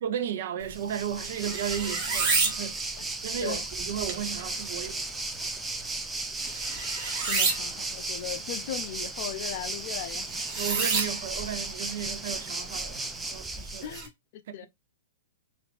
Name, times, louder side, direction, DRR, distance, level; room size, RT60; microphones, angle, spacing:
voice 1, 0.0-2.9 3.2-5.1 10.6-14.0 14.5-14.7, right 9 dB, 55° right, 0.6 m, -34 dB
sound 1, 0.6-14.1, right 4 dB, 35° right, 1.3 m, -33 dB
Waves surf, 0.7-14.0, right 2 dB, 10° right, 0.5 m, -35 dB
voice 2, 7.3-10.4 13.8-14.7, left 11 dB, 50° left, 0.5 m, -38 dB
5.1 x 2.5 x 2.4 m
figure-of-eight pair, 110°, 0 cm